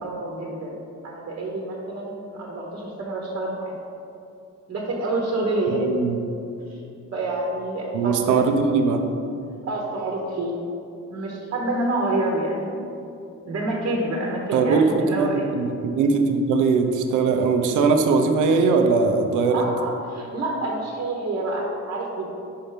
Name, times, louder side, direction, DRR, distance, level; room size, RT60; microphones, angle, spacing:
voice 1, 0.0-0.8 1.0-3.7 4.7-5.8 6.7-6.8 7.1-8.6 9.7-10.5 11.1-12.8 13.4-15.5 19.5-22.3, right 2 dB, 50° right, -2 dB, 1.1 m, -27 dB
voice 2, 5.7-6.2 7.9-9.0 14.5-14.8 15.1-19.6, right 4 dB, 80° right, 4 dB, 0.7 m, -20 dB
5.6 x 4.4 x 5.0 m, 2.7 s
cardioid pair, 90°, 30 cm